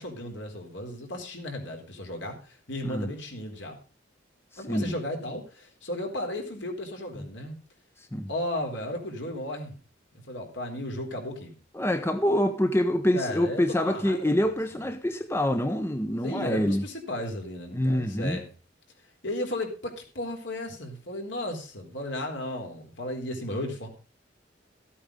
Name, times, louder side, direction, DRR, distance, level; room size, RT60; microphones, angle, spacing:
voice 1, 0.0-3.8 4.6-7.6 8.3-9.8 10.3-11.6 13.1-14.5 16.2-18.5 19.2-23.9, left 1 dB, 65° left, 4.0 m, -34 dB
voice 2, 11.7-16.8 17.7-18.4, left 1 dB, 15° left, 0.8 m, -26 dB
15.0 x 8.6 x 5.2 m
head